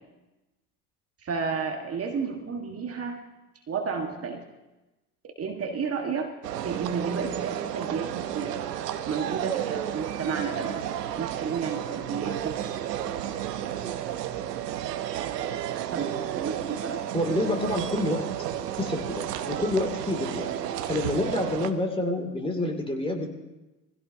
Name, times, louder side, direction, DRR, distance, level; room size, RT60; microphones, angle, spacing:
voice 1, 1.2-3.2 3.7-4.4 5.4-6.3 6.6-8.5 9.1-12.6 15.9-16.5 16.8-17.0, right 5 dB, 30° right, 3 dB, 1.7 m, -32 dB
sound 1, 6.4-21.7, right 10 dB, 80° right, 1.0 m, -32 dB
voice 2, 17.1-18.3 18.8-20.5 20.9-23.3, left 1 dB, 10° left, 3 dB, 2.6 m, -28 dB
23.0 x 16.0 x 2.8 m, 1.1 s
hypercardioid pair, 80°, 47 cm